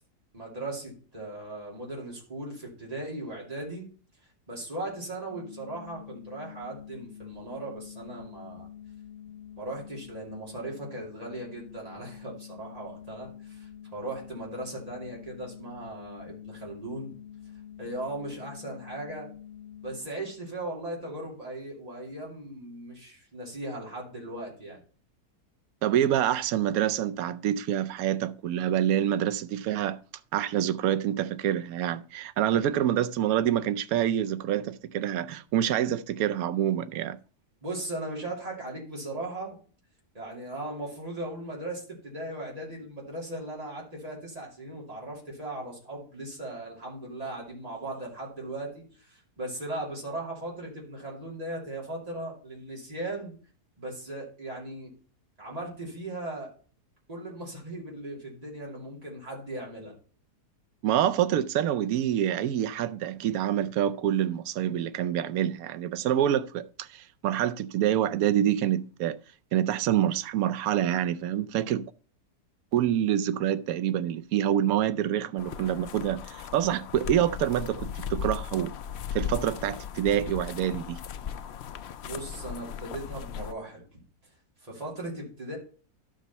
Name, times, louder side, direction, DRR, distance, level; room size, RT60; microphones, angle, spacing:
voice 1, 0.3-3.9 4.5-8.7 9.6-17.2 17.8-19.3 19.8-24.8 37.6-39.6 40.1-53.3 53.8-54.9 55.4-56.5 57.1-59.9 82.0-83.8 84.6-85.6, right 1 dB, 25° right, 2.9 m, -38 dB
sound 1, 5.3-20.0, left 9 dB, 45° left, 1.7 m, -46 dB
voice 2, 25.8-30.0 30.3-37.2 60.8-69.2 69.5-71.9 72.7-78.7 79.1-81.0, right 11 dB, 70° right, 1.0 m, -26 dB
sound 2, 75.4-83.5, left 8 dB, 75° left, 0.6 m, -37 dB
11.5 x 5.2 x 5.4 m
omnidirectional pair, 1.7 m